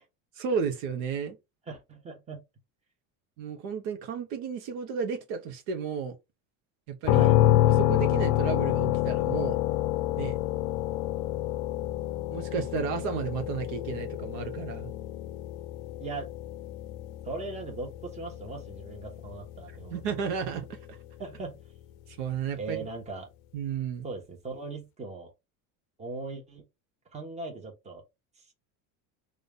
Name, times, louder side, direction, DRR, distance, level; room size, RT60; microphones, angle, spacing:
voice 1, 0.4-1.3 3.4-6.2 6.9-7.3 7.7-9.6 10.2-10.4 12.3-14.9 19.9-21.0 22.1-22.8 23.5-24.1, right 6 dB, 65° right, 1.0 m, -33 dB
voice 2, 1.7-2.4 7.1-7.4 16.0-16.3 17.2-20.0 21.2-21.6 22.6-23.3 24.0-25.3 26.0-26.6 27.1-28.0, right 3 dB, 15° right, 1.2 m, -39 dB
sound 1, 7.0-20.8, left 14 dB, 75° left, 0.5 m, -28 dB
4.0 x 2.5 x 3.5 m
cardioid pair, 140°, 42 cm